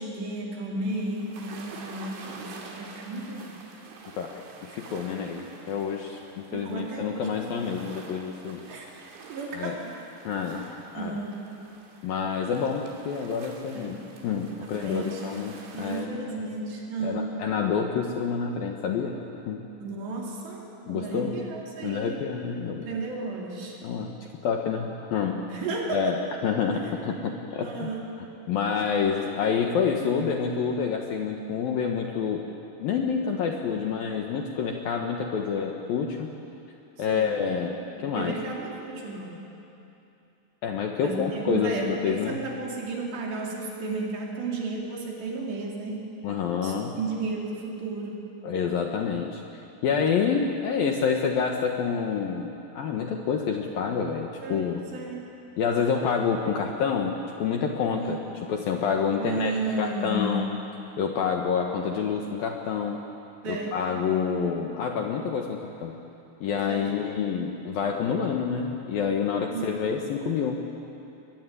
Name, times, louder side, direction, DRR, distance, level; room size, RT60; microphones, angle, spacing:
voice 1, 0.0-3.6 6.5-7.6 8.7-8.9 9.3-10.0 10.9-11.4 13.7-14.0 14.6-15.2 15.7-17.4 19.8-22.2 22.8-23.8 25.4-26.2 26.8-26.9 27.6-28.1 37.0-37.4 38.0-39.4 41.0-46.1 46.6-48.3 54.4-55.3 58.0-58.2 59.2-60.5 63.4-63.8 66.4-66.9 69.5-69.7, right 3 dB, 65° right, -2 dB, 5.8 m, -33 dB
sound 1, 0.9-16.0, right 4 dB, 80° right, 5.3 m, -47 dB
voice 2, 4.2-8.6 9.5-9.8 10.2-10.7 10.9-11.2 12.0-14.0 14.2-16.1 17.0-19.1 19.5-19.6 20.9-21.3 21.8-22.9 23.8-24.1 24.4-25.4 25.9-27.9 28.5-32.4 32.8-36.3 37.0-38.3 40.6-42.4 46.2-46.9 48.4-54.8 55.6-58.2 58.5-59.5 59.8-60.5 61.0-63.0 63.5-65.9 66.4-70.6, left 6 dB, 65° left, 2 dB, 2.5 m, -28 dB
23.0 x 23.0 x 9.9 m, 2.8 s
omnidirectional pair, 5.5 m